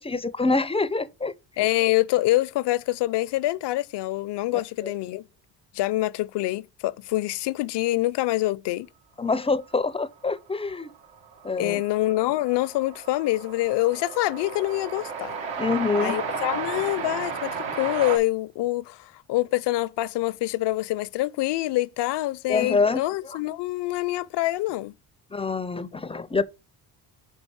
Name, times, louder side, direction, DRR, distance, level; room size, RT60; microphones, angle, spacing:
voice 1, 0.0-1.3 4.5-4.9 9.2-10.9 11.4-11.8 15.6-16.1 22.5-23.0 23.3-23.4 25.3-26.4, left 3 dB, 15° left, 0.4 m, -26 dB
voice 2, 1.6-5.2 5.7-8.9 11.6-15.4 16.0-24.9, left 17 dB, 65° left, 0.5 m, -26 dB
Train, 10.8-10.9 11.0-18.2, right 5 dB, 90° right, 1.6 m, -33 dB
5.4 x 5.1 x 4.6 m
cardioid pair, 95°, 44 cm